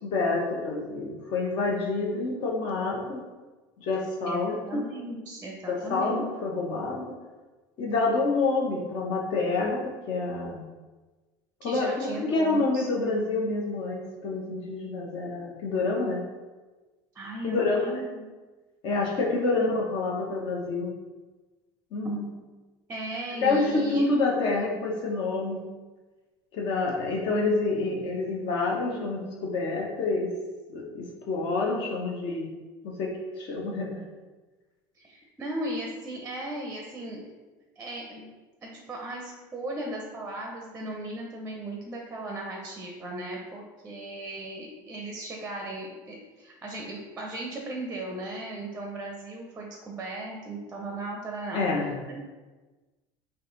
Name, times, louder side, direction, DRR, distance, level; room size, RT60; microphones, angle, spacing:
voice 1, 0.0-3.2 3.8-4.8 5.7-7.1 7.8-10.6 11.6-16.2 17.4-17.9 18.8-20.9 21.9-22.3 23.4-25.6 26.5-30.3 30.7-32.5 32.8-34.0 51.5-52.0, left 3 dB, 50° left, -1 dB, 0.8 m, -28 dB
voice 2, 4.3-6.2 11.6-12.9 17.1-18.2 22.9-24.0 35.0-37.2 37.8-38.3 38.6-51.6 52.1-52.2, right 1 dB, 15° right, 0 dB, 0.6 m, -37 dB
3.9 x 2.8 x 3.8 m, 1.2 s
cardioid pair, 140°, 10 cm